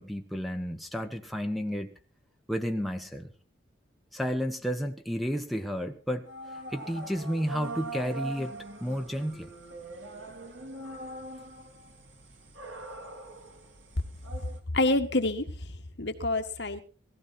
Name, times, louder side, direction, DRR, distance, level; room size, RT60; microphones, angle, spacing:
voice 1, 0.0-1.9 2.5-3.3 4.1-6.3 6.7-8.5 8.8-9.5, equal, ahead, 3 dB, 1.2 m, -31 dB
sound 1, 6.3-14.6, right 2 dB, 85° right, 3.0 m, -42 dB
voice 2, 14.7-16.8, left 2 dB, 65° left, 7 dB, 1.7 m, -28 dB
17.5 x 15.5 x 4.4 m, 0.37 s
head